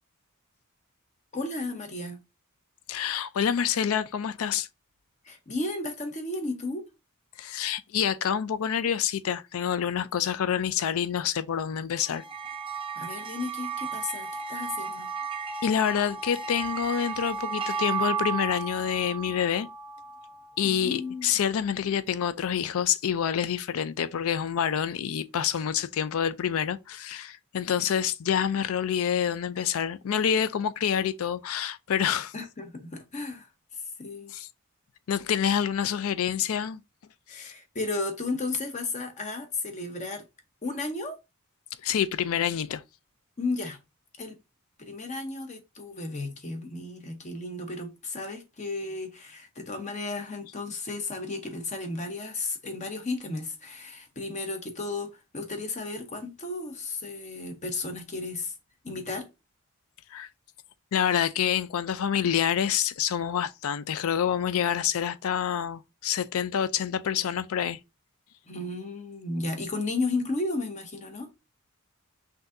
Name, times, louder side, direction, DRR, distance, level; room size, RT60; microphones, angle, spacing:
voice 1, 1.3-2.2 5.2-6.8 12.9-15.1 20.6-21.3 32.3-33.5 34.0-34.3 37.3-40.2 40.6-41.2 43.4-43.8 44.2-44.4 44.8-58.5 58.8-59.3 68.5-71.3, left 3 dB, 35° left, 0.8 m, -34 dB
voice 2, 2.9-4.7 7.4-12.2 15.6-19.7 20.6-32.3 34.3-34.5 35.1-36.8 37.3-37.5 41.8-42.8 60.1-60.3 60.9-67.8, left 8 dB, 70° left, 0.4 m, -27 dB
sound 1, 12.0-20.6, right 5 dB, 25° right, 0.4 m, -34 dB
5.8 x 2.7 x 2.6 m
head